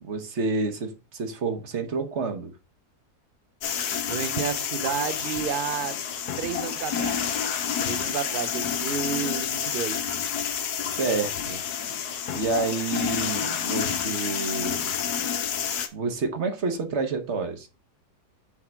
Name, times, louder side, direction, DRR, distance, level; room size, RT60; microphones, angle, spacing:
voice 1, 0.0-2.5 10.8-11.6 12.3-14.9 15.9-17.7, right 4 dB, 45° right, 1.3 m, -29 dB
sound 1, 3.6-15.9, left 8 dB, 75° left, 1.4 m, -29 dB
voice 2, 4.1-6.0 6.4-10.2, right 8 dB, 75° right, 0.4 m, -31 dB
8.0 x 3.7 x 4.5 m
omnidirectional pair, 1.7 m